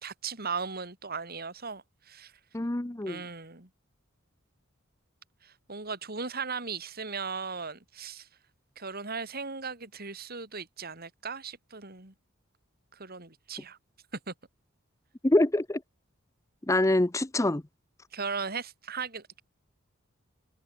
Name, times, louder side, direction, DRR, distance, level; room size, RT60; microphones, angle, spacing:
voice 1, 0.0-2.3 3.1-3.7 5.4-8.3 8.8-12.1 12.9-13.8 14.1-14.3 18.1-19.4, right 5 dB, 45° right, 3.7 m, -37 dB
voice 2, 2.5-3.2 15.2-15.8 16.7-17.6, left 1 dB, 15° left, 0.7 m, -25 dB
head